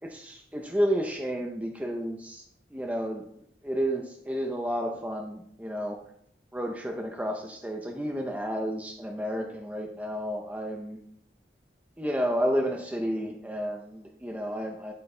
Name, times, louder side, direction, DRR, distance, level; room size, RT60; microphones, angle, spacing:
voice 1, 0.0-2.4 2.7-3.2 3.6-6.0 6.5-11.0 12.0-14.9, equal, 10° right, 2 dB, 0.6 m, -31 dB
10.5 x 4.5 x 3.3 m, 0.67 s
head